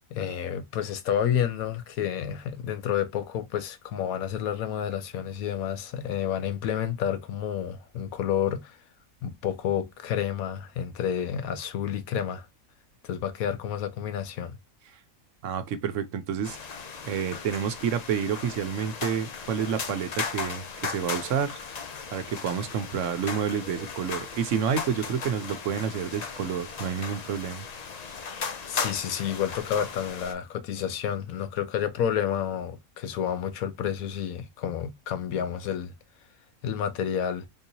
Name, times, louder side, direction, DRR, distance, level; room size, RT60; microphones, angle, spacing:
voice 1, 0.1-8.8 9.2-12.5 13.0-14.6 28.3-35.9 36.6-37.5, left 9 dB, 85° left, 1.1 m, -30 dB
voice 2, 15.4-16.6 17.0-21.5 22.1-27.7, right 7 dB, 70° right, 0.9 m, -29 dB
sound 1, 16.4-30.3, left 5 dB, 55° left, 0.4 m, -37 dB
3.7 x 2.7 x 2.7 m
omnidirectional pair, 1.4 m